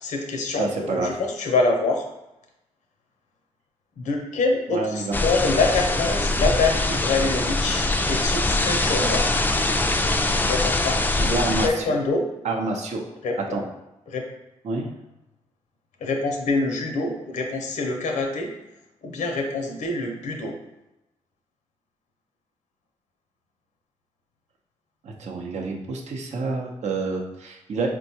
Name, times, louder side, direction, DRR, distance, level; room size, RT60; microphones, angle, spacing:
voice 1, 0.0-2.0 4.0-9.3 10.5-12.2 13.2-13.3 14.1-14.2 16.0-18.5 19.0-20.6, left 3 dB, 75° left, 2 dB, 0.6 m, -25 dB
voice 2, 0.6-1.2 4.7-5.2 11.2-12.0 12.4-13.0 13.5-13.7 14.6-14.9 25.0-27.9, right 3 dB, 65° right, 1 dB, 0.6 m, -28 dB
sound 1, 5.1-11.7, left 2 dB, 15° left, 0.3 m, -23 dB
4.4 x 2.2 x 2.8 m, 0.90 s
supercardioid pair, 50°, 13 cm